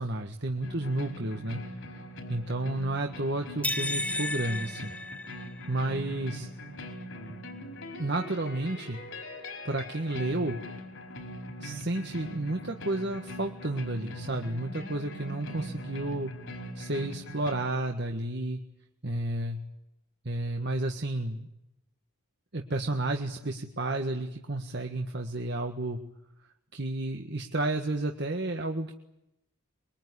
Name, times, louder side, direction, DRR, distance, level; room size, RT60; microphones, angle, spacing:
voice 1, 0.0-1.6 2.3-4.9 5.7-6.5 8.0-9.0 9.7-10.6 11.6-16.3 16.8-18.6 19.0-19.6 20.3-21.5 22.5-26.0 26.7-28.9, right 2 dB, 50° right, 3 dB, 1.6 m, -31 dB
sound 1, 0.6-17.6, equal, 60° left, 4.7 m, -41 dB
sound 2, 3.6-5.8, left 1 dB, 5° left, 1.0 m, -33 dB
24.0 x 23.0 x 9.9 m, 0.86 s
head